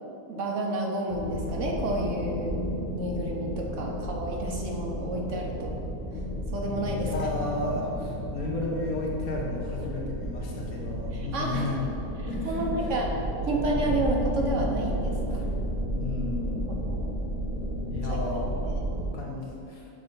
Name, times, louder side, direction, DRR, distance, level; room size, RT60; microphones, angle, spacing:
voice 1, 0.0-2.6 2.9-5.8 6.5-7.3 11.1-11.7 12.4-13.1 13.5-15.4 16.7-17.1 18.0-18.2 18.7-18.9, right 1 dB, 60° right, 0 dB, 1.0 m, -31 dB
sound 1, 1.1-19.1, equal, 10° right, 1.3 m, -32 dB
voice 2, 7.1-11.9 12.2-12.9 15.3-15.5 15.8-16.9 17.9-18.6 19.1-19.9, left 2 dB, 70° left, -3 dB, 1.6 m, -33 dB
6.5 x 3.9 x 5.5 m, 2.7 s
omnidirectional pair, 1.6 m